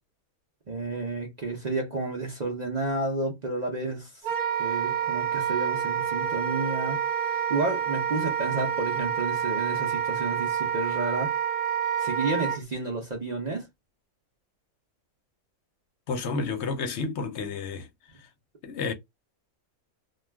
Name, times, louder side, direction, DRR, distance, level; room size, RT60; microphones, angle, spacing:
voice 1, 0.7-4.2 4.6-11.4 12.0-13.7, right 3 dB, 45° right, 0.5 m, -31 dB
Wind instrument woodwind instrument, 4.2-12.6, right 8 dB, 80° right, 1.2 m, -28 dB
voice 2, 16.1-17.9 18.6-18.9, left 4 dB, 60° left, 0.8 m, -30 dB
2.3 x 2.3 x 3.3 m
omnidirectional pair, 1.5 m